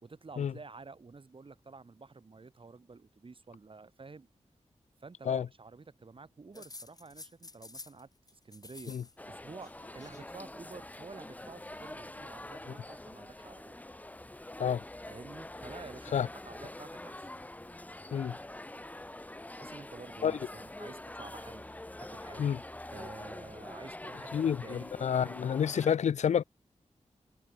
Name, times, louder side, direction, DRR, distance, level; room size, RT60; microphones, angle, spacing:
voice 1, 0.0-4.3 5.0-9.0 9.3-13.8 15.1-17.3 19.6-21.6 22.0-22.6 22.9-25.5, right 4 dB, 50° right, 5.2 m, -50 dB
sound 1, 6.5-8.0 8.3-9.1 9.4-10.2 11.3-12.0, left 3 dB, 30° left, 7.9 m, -51 dB
sound 2, 9.2-25.9, left 1 dB, 15° left, 1.0 m, -45 dB
voice 2, 24.3-26.4, left 8 dB, 75° left, 0.4 m, -29 dB
wide cardioid pair, 115°, 12 cm